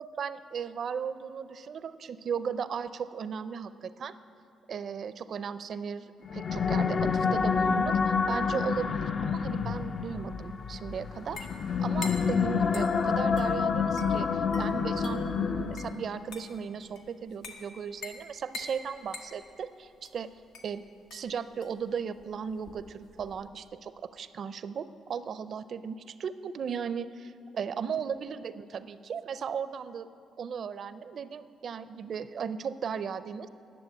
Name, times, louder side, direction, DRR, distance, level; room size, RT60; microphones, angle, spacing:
voice 1, 0.0-4.1 4.7-11.5 11.8-20.3 20.6-20.8 21.1-27.3 27.5-30.1 30.4-33.5, right 7 dB, 55° right, 14 dB, 0.4 m, -36 dB
sound 1, 6.2-16.1, left 5 dB, 50° left, 0.5 m, -28 dB
sound 2, 9.5-23.5, left 3 dB, 90° left, 1.3 m, -47 dB
10.5 x 7.1 x 8.7 m, 2.7 s
cardioid pair, 90°, 0 cm